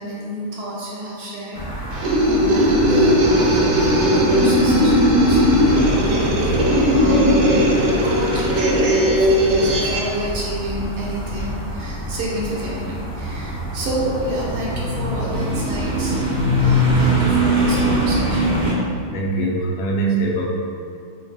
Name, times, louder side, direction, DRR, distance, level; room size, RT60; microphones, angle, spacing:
voice 1, 0.0-1.6 2.5-7.3 7.5-7.7 8.0-16.1 16.6-18.6, right 1 dB, 90° right, -6 dB, 1.7 m, -29 dB
sound 1, 1.5-18.7, equal, 55° left, 0.3 m, -24 dB
sound 2, 1.9-10.1, equal, 75° right, 1.2 m, -17 dB
voice 2, 2.3-2.6 19.1-20.4, right 3 dB, 90° left, -2 dB, 1.4 m, -23 dB
4.7 x 2.6 x 2.3 m, 2.3 s
omnidirectional pair, 2.2 m